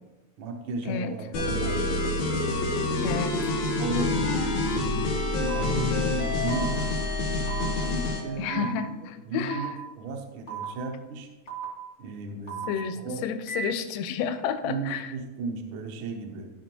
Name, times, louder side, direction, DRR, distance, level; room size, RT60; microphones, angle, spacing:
voice 1, 0.4-1.8 3.1-3.3 3.8-6.9 7.8-11.3 12.0-13.2 14.6-16.5, right 3 dB, 90° right, 3 dB, 1.1 m, -35 dB
sound 1, 1.3-8.3, left 2 dB, 65° left, 2.1 m, -27 dB
voice 2, 3.0-3.5 8.4-8.9 9.3-9.7 12.7-15.1, left 7 dB, 80° left, 9 dB, 1.5 m, -30 dB
sound 2, 5.5-5.6 6.5-6.6 7.5-7.6 8.5-8.6 9.5-9.6 10.5-10.6 11.5-11.6 12.5-12.6 13.5-13.6, right 7 dB, 30° left, 1.4 m, -35 dB
13.0 x 5.4 x 2.9 m, 1.2 s
omnidirectional pair, 3.6 m